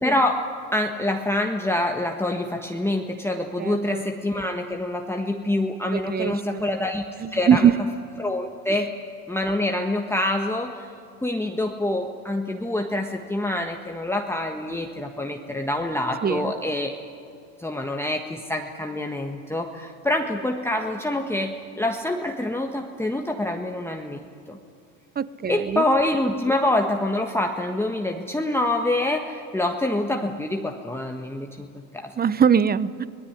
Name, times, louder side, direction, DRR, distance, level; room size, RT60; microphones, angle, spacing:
voice 1, 0.0-7.0 7.3-7.7 8.2-8.9 9.3-10.9 11.2-16.9 17.6-24.6 25.5-32.1, left 1 dB, 5° left, 2 dB, 1.5 m, -26 dB
voice 2, 3.6-4.0 5.9-6.7 7.2-7.7 8.7-8.8 16.2-16.5 25.2-25.8 32.2-33.1, right 7 dB, 20° right, 17 dB, 0.8 m, -22 dB
25.5 x 18.5 x 9.8 m, 2.5 s
supercardioid pair, 95°, 43 cm